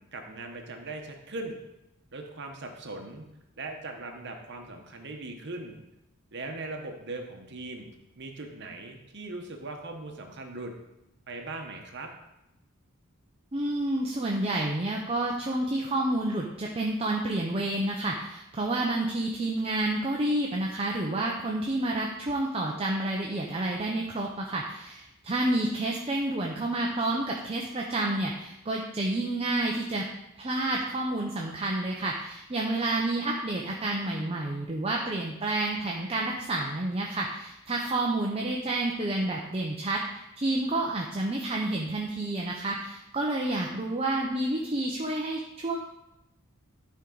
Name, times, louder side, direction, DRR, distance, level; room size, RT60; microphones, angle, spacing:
voice 1, 0.0-1.6 2.1-3.2 3.6-5.8 6.3-7.9 8.2-10.7 11.3-12.1, right 2 dB, 55° right, 3 dB, 1.1 m, -39 dB
voice 2, 13.5-30.0 30.4-40.0 40.4-45.8, right 2 dB, 30° right, -1 dB, 0.7 m, -29 dB
11.5 x 4.6 x 3.9 m, 0.88 s
head